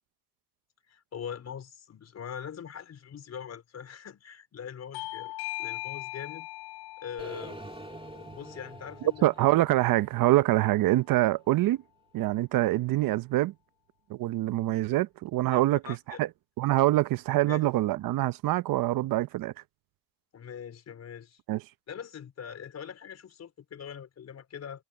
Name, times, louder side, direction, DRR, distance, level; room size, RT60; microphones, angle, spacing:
voice 1, 0.9-5.3 5.6-6.5 7.0-7.6 8.1-9.5 14.9-15.0 15.5-16.2 17.5-17.6 20.3-21.4 21.9-24.8, left 8 dB, 35° left, 4.7 m, -42 dB
Bell / Doorbell, 4.9-10.1, left 19 dB, 65° left, 5.7 m, -41 dB
sound 1, 7.2-11.2, right 2 dB, 15° right, 3.7 m, -46 dB
voice 2, 9.2-11.8 12.1-13.5 14.1-15.8 16.2-16.3 16.6-19.5 21.5-21.6, right 16 dB, 50° right, 1.0 m, -25 dB
supercardioid pair, 105°, 42 cm